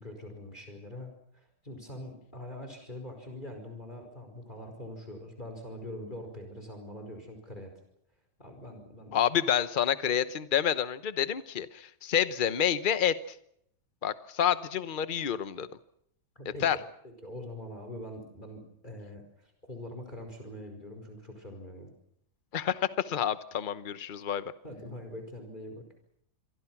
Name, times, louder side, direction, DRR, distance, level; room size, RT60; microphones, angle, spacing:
voice 1, 0.0-7.7 8.4-9.2 16.4-16.8 17.0-21.9 24.6-25.8, left 1 dB, 20° left, 5 dB, 5.2 m, -43 dB
voice 2, 9.1-13.4 14.0-15.7 16.6-16.8 22.5-24.4, left 9 dB, 40° left, 13 dB, 0.7 m, -28 dB
27.5 x 23.0 x 6.1 m, 0.71 s
omnidirectional pair, 2.2 m